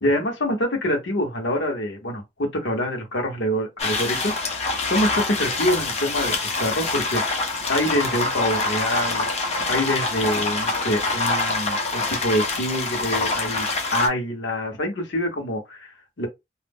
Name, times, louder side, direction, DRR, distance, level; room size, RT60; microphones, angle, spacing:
voice 1, 0.0-7.2 7.7-9.3 9.7-16.3, left 1 dB, 90° left, 1.1 m, -26 dB
sound 1, 3.8-14.1, left 3 dB, 35° left, 0.8 m, -25 dB
2.6 x 2.0 x 3.5 m
head